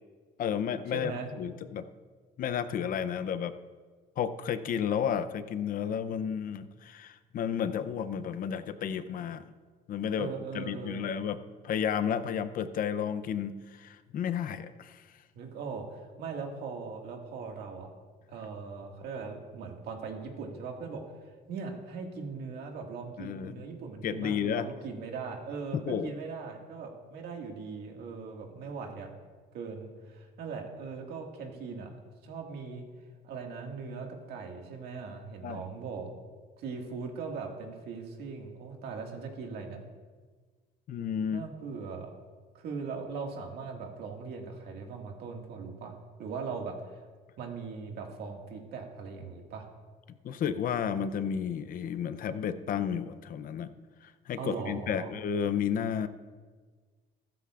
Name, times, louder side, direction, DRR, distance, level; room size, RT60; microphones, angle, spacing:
voice 1, 0.4-1.8 2.4-3.5 4.2-9.4 9.9-10.3 10.5-11.4 11.6-15.0 23.2-23.6 24.0-24.7 25.9-26.1 35.4-35.6 40.9-41.5 50.2-53.7 54.0-56.1, left 8 dB, 55° left, 11 dB, 0.7 m, -32 dB
voice 2, 0.9-1.3 10.2-11.1 15.3-17.9 18.3-21.0 21.5-29.1 29.5-32.0 32.2-32.9 33.2-36.1 36.6-39.8 41.3-42.1 42.5-45.9 46.2-47.0 47.4-49.7 54.4-55.1, right 5 dB, 75° right, 2 dB, 2.0 m, -40 dB
15.0 x 13.0 x 2.5 m, 1.5 s
cardioid pair, 110°, 17 cm